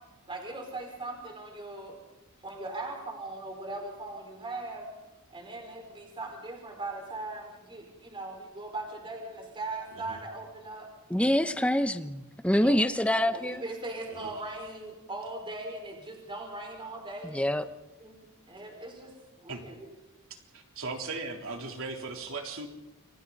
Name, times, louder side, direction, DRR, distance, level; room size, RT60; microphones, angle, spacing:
voice 1, 0.3-2.0 2.4-4.9 5.3-10.9 13.3-17.4 18.0-18.1 18.5-19.8, right 2 dB, 25° right, 5.2 m, -39 dB
voice 2, 9.9-10.2 12.6-12.8 14.1-14.3 19.5-19.6 20.5-22.7, right 3 dB, 65° right, 3.7 m, -38 dB
voice 3, 11.1-13.6 17.2-17.6, left 1 dB, 5° left, 0.9 m, -26 dB
29.0 x 24.5 x 4.2 m
head